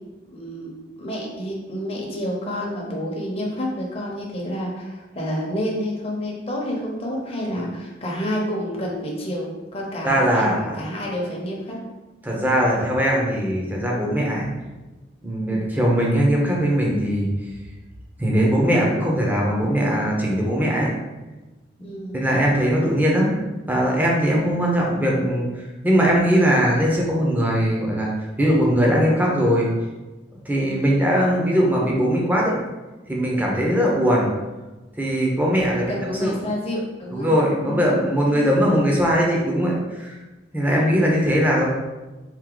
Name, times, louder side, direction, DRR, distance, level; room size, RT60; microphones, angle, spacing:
voice 1, 0.3-0.7 1.0-11.8 15.5-15.7 21.8-22.2 30.6-30.9 33.6-33.9 35.7-37.3 37.6-37.9 38.3-38.5 40.7-41.1, equal, 35° left, -2 dB, 1.0 m, -29 dB
voice 2, 10.0-10.8 12.2-14.5 15.2-17.3 18.2-20.9 22.1-23.3 23.7-25.5 25.8-28.1 28.4-29.7 30.5-32.5 33.1-34.3 35.0-36.4 37.1-40.1 40.5-41.7, equal, 10° right, -3 dB, 0.9 m, -20 dB
4.6 x 2.6 x 3.9 m, 1.1 s
head